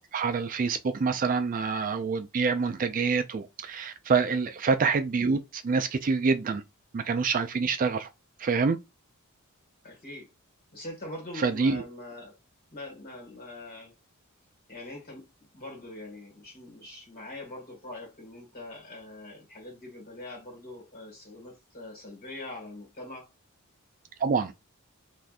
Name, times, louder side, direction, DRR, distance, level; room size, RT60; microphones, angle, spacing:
voice 1, 0.1-6.6 6.9-8.1 8.4-8.8 11.4-11.8 24.2-24.5, right 4 dB, 40° right, 0.4 m, -26 dB
voice 2, 9.8-10.3 10.7-12.4 12.7-13.9 14.7-23.3, left 2 dB, 45° left, 1.8 m, -43 dB
3.4 x 2.6 x 2.4 m
head